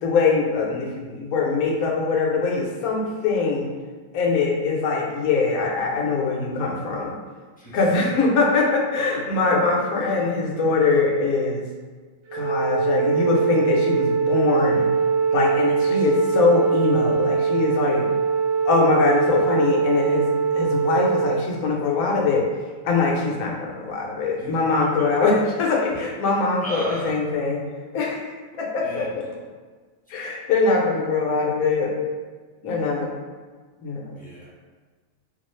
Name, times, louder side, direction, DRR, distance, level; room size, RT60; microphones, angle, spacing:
voice 1, 0.0-3.7 4.1-7.1 7.7-11.6 12.3-14.8 15.3-18.2 18.6-20.3 20.5-22.5 22.8-27.7 27.9-28.3 28.6-29.3 30.1-31.9 32.6-33.1 33.8-34.1, left 4 dB, 70° left, -1 dB, 1.1 m, -22 dB
Wind instrument woodwind instrument, 12.3-21.4, right 5 dB, 85° right, 1.4 m, -22 dB
voice 2, 15.7-16.0 24.4-24.5 26.6-27.1 28.8-29.1 34.1-34.5, equal, 10° left, -9 dB, 0.6 m, -35 dB
3.8 x 2.4 x 3.1 m, 1.4 s
omnidirectional pair, 1.7 m